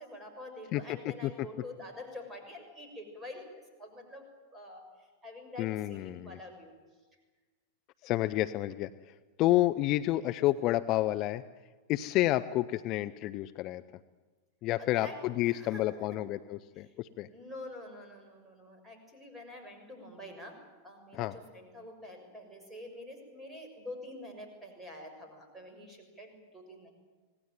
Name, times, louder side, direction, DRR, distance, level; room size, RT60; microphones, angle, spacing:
voice 1, 0.0-3.5 3.8-4.3 4.5-6.7 14.8-16.2 16.9-17.0 17.3-20.6 20.8-26.9, left 1 dB, 10° right, 3 dB, 6.3 m, -47 dB
voice 2, 5.6-6.4 8.0-8.9 9.4-11.4 11.9-13.8 14.6-17.3 21.1-21.3, left 15 dB, 40° left, 11 dB, 0.7 m, -29 dB
25.5 x 18.5 x 9.2 m, 1.4 s
figure-of-eight pair, 90°, 0 cm